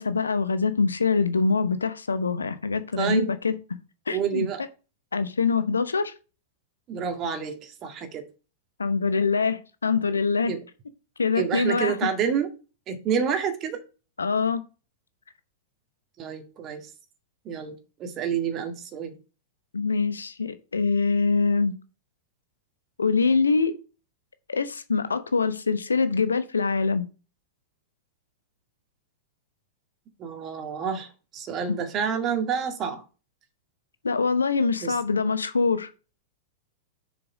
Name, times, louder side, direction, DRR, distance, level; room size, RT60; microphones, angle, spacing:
voice 1, 0.0-3.6 4.1-4.5 5.1-6.1 8.8-10.5 11.2-12.1 14.2-14.6 19.7-21.8 23.0-23.7 24.5-27.1 34.0-35.9, left 4 dB, 75° left, 0.7 m, -24 dB
voice 2, 3.0-3.3 4.1-4.6 6.9-8.3 10.5-10.6 11.4-12.5 12.9-13.8 16.2-16.8 17.5-19.1 30.2-33.0 34.8-34.9, right 7 dB, 30° right, 1.9 m, -28 dB
6.9 x 5.1 x 5.0 m
figure-of-eight pair, 100°, 0 cm